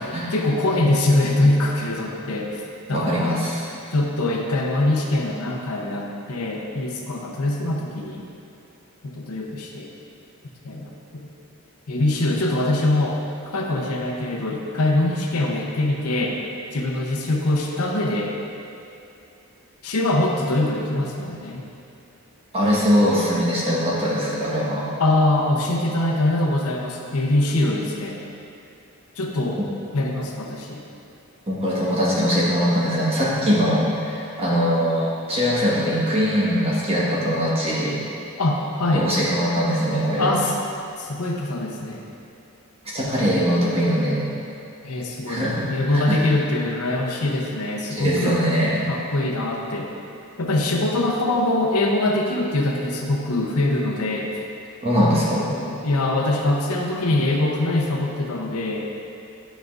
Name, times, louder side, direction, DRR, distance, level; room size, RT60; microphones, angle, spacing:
voice 1, 0.3-2.6 2.9-3.4 3.9-8.2 9.0-9.9 10.6-11.3 11.9-13.2 13.5-16.4 16.7-18.3 19.8-21.7 25.0-28.2 29.2-29.6 29.9-30.8 38.4-39.1 40.2-40.6 41.0-42.1 44.8-48.4 48.9-49.9 50.4-54.3 55.5-58.9, left 1 dB, 80° left, 0 dB, 0.8 m, -23 dB
voice 2, 2.9-3.6 22.5-24.8 31.5-37.9 38.9-40.3 42.8-44.2 45.3-46.2 47.9-48.9 54.8-55.4, equal, 25° right, -7 dB, 1.3 m, -21 dB
10.0 x 5.1 x 2.5 m, 2.8 s
head